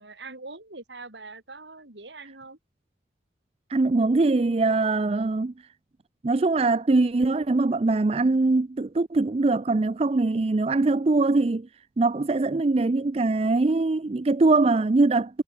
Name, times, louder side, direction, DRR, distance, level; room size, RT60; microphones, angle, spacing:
voice 1, 0.0-2.6, right 3 dB, 80° right, 4.2 m, -43 dB
voice 2, 3.7-5.5 6.2-11.7 12.0-15.4, right 3 dB, 35° right, 0.4 m, -22 dB
head